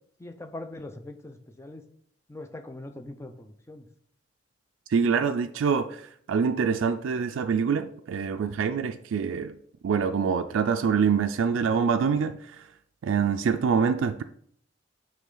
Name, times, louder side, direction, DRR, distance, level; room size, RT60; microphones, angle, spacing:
voice 1, 0.2-1.8 2.3-3.8, left 2 dB, 15° left, 0.5 m, -41 dB
voice 2, 4.9-6.0 6.3-9.6 9.8-12.4 13.0-14.2, right 6 dB, 85° right, 0.3 m, -25 dB
8.5 x 3.2 x 3.8 m
head